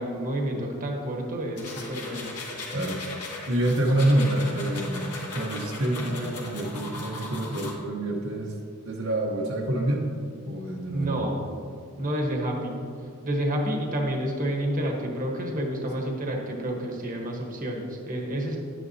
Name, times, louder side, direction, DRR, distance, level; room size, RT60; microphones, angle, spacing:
voice 1, 0.0-2.3 10.9-11.4 12.0-12.8 13.2-18.6, right 1 dB, 35° right, 0 dB, 1.2 m, -29 dB
sound 1, 1.6-7.7, left 2 dB, 90° left, 1.8 m, -37 dB
voice 2, 3.5-8.5 8.8-10.0 10.5-11.2, right 1 dB, 60° right, -3 dB, 1.0 m, -27 dB
10.5 x 9.4 x 2.8 m, 2.5 s
head